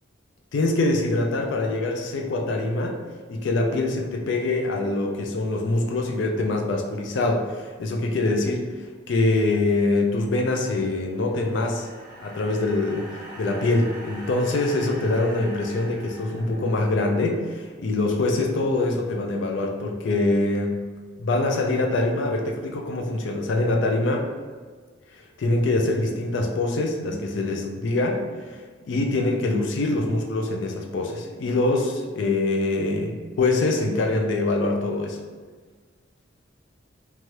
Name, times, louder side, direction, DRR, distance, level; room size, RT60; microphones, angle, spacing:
voice 1, 0.5-3.0 3.3-8.7 9.1-11.9 12.2-20.8 21.2-24.3 25.4-35.2, left 2 dB, 70° left, 2 dB, 0.4 m, -24 dB
sound 1, 10.8-17.2, right 1 dB, 25° right, 0.6 m, -43 dB
2.8 x 2.3 x 3.1 m, 1.5 s
head